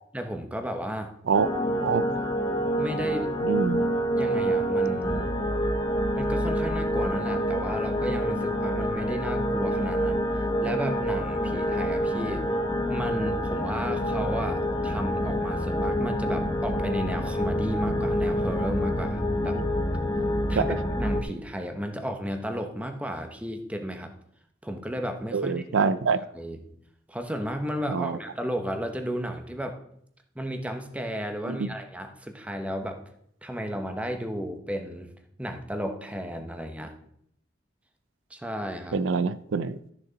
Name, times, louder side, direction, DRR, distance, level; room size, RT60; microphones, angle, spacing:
voice 1, 0.1-1.1 2.8-3.3 4.2-5.3 6.1-10.3 10.6-12.4 12.9-19.6 20.5-24.1 24.6-25.9 26.3-26.6 27.1-29.8 30.3-33.0 33.4-35.1 35.4-36.9 38.3-39.0, equal, 5° right, 1.0 m, -33 dB
sound 1, 1.3-21.2, equal, 20° left, 0.9 m, -27 dB
voice 2, 1.3-2.0 3.4-3.8 20.6-20.8 25.3-26.2 27.9-28.2 31.5-31.6 38.9-39.8, right 5 dB, 85° right, 0.5 m, -25 dB
13.0 x 6.6 x 4.0 m
head